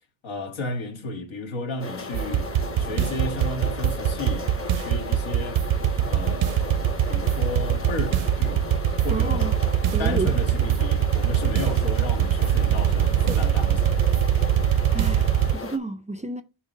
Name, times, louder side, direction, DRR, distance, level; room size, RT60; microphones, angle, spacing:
voice 1, 0.2-2.5 2.8-4.5 4.7-5.7 6.0-9.5 10.0-14.0, left 2 dB, 70° left, 1.6 m, -33 dB
sound 1, 1.8-15.8, left 3 dB, 30° left, 1.0 m, -35 dB
sound 2, 2.1-15.5, right 10 dB, 85° right, 0.7 m, -22 dB
voice 2, 9.1-9.6 9.9-10.3 14.9-16.4, right 3 dB, 15° right, 0.4 m, -31 dB
7.3 x 3.2 x 5.3 m
cardioid pair, 80°, 48 cm